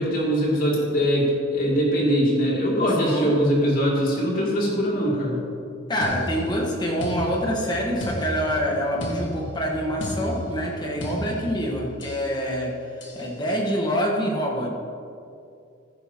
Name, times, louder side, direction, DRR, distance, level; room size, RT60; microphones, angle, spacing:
voice 1, 0.0-5.4, equal, 45° left, -4 dB, 2.7 m, -22 dB
voice 2, 3.0-3.4 5.9-14.7, equal, 20° left, -1 dB, 1.4 m, -26 dB
sound 1, 6.0-12.3 13.0-13.3, left 1 dB, 60° left, 1.8 m, -34 dB
15.5 x 10.0 x 3.0 m, 2.4 s
head